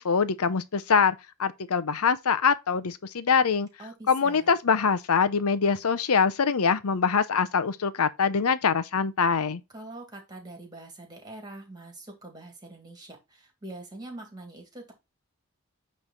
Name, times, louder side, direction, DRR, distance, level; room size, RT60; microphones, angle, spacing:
voice 1, 0.0-3.7 4.1-9.6, left 5 dB, 80° left, 0.7 m, -24 dB
voice 2, 3.8-4.5 9.7-14.9, right 2 dB, 20° right, 2.1 m, -44 dB
9.0 x 3.3 x 3.9 m
head